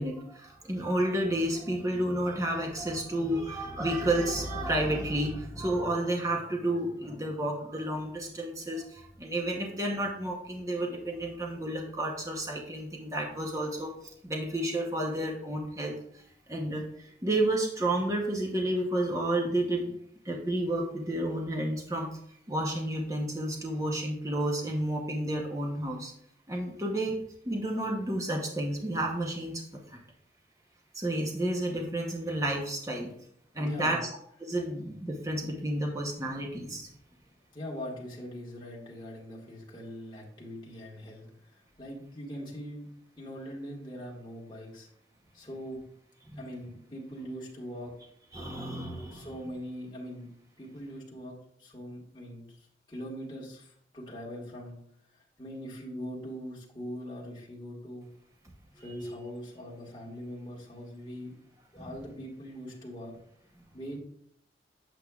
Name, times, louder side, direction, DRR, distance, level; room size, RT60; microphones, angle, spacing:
voice 1, 0.0-16.2 16.5-20.0 20.2-22.1 22.5-26.1 26.5-27.1 27.4-29.6 29.9-30.0 30.9-33.1 33.5-34.1 34.5-36.9 46.3-46.4 48.3-49.3 58.8-59.2 61.8-61.9, right 1 dB, 20° right, 0 dB, 0.8 m, -31 dB
voice 2, 33.5-34.0 37.5-42.9 43.2-44.9 45.3-45.8 46.3-47.9 49.1-50.3 50.6-52.5 52.9-54.7 55.1-58.1 58.7-61.3 61.7-63.1 63.7-64.0, equal, 25° left, -4 dB, 1.6 m, -42 dB
8.1 x 6.3 x 2.3 m, 0.69 s
head